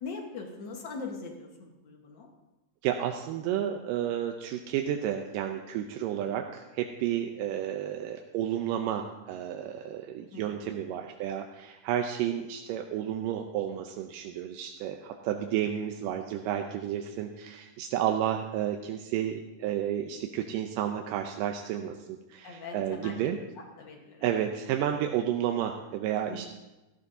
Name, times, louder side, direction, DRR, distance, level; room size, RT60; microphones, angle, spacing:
voice 1, 0.0-2.3 10.3-10.9 22.4-23.3 23.8-24.3 26.2-26.4, left 4 dB, 60° left, 2 dB, 1.1 m, -41 dB
voice 2, 2.8-23.4 24.2-26.5, right 10 dB, 80° right, 4 dB, 2.2 m, -31 dB
17.0 x 14.5 x 2.7 m, 1.1 s
omnidirectional pair, 4.1 m